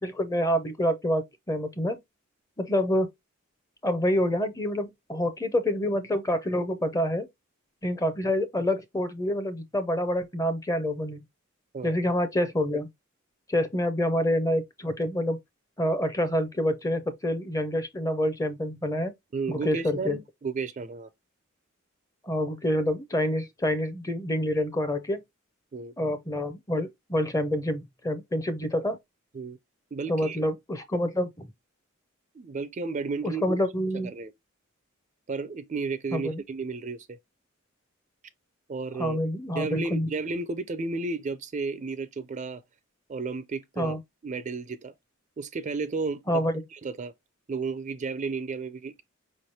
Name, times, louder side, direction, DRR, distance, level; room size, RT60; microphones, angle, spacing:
voice 1, 0.0-2.0 2.6-3.1 3.8-7.3 7.8-11.2 11.8-12.9 13.5-15.4 15.8-19.1 19.5-20.2 22.2-25.2 26.0-29.0 30.1-31.5 33.2-34.1 36.1-36.4 39.0-40.1 43.8-44.0 46.3-46.5, left 1 dB, 15° left, 0.6 m, -27 dB
voice 2, 19.3-21.1 25.7-25.9 29.3-29.6 29.9-30.4 32.3-33.6 34.0-34.3 35.3-37.2 38.7-39.2 39.6-42.6 43.1-44.0 44.2-44.9 45.4-46.4 46.7-47.1 47.5-49.0, right 4 dB, 35° right, 0.4 m, -33 dB
4.8 x 3.2 x 2.7 m
head